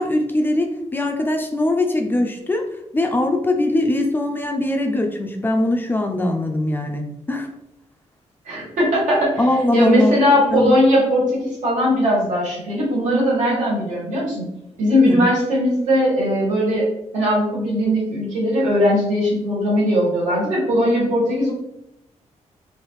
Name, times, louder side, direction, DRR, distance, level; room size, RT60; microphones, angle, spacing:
voice 1, 0.0-2.6 2.9-7.5 9.4-10.2 10.5-10.8 15.1-15.2, left 1 dB, 15° left, 3 dB, 0.4 m, -21 dB
voice 2, 8.4-9.4 9.7-14.4 14.8-16.9 17.1-21.5, equal, 80° right, -5 dB, 1.5 m, -19 dB
3.3 x 2.6 x 3.0 m, 0.88 s
cardioid pair, 130°, 12 cm